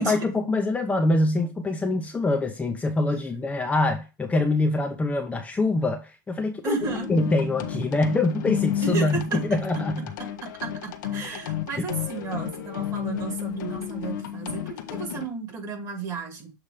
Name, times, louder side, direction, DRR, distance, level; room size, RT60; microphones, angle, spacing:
voice 1, 0.0-6.7 7.1-10.1 11.8-11.9, left 2 dB, 15° left, 0.9 m, -24 dB
voice 2, 6.6-7.1 8.8-9.4 10.4-16.5, right 4 dB, 35° right, 2.5 m, -33 dB
sound 1, 6.8-15.3, left 11 dB, 75° left, 1.1 m, -32 dB
7.4 x 2.9 x 4.9 m
supercardioid pair, 115°, 10 cm